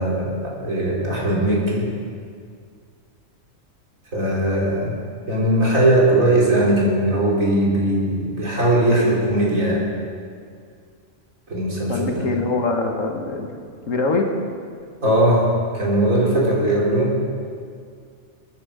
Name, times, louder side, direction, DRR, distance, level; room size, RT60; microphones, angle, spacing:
voice 1, 0.0-1.9 4.1-5.0 5.3-9.9 11.5-12.3 15.0-17.2, right 1 dB, 85° right, -4 dB, 3.5 m, -19 dB
voice 2, 11.9-13.5 13.9-14.3, left 3 dB, 75° left, 3 dB, 1.8 m, -23 dB
22.5 x 9.5 x 5.0 m, 2.1 s
omnidirectional pair, 1.4 m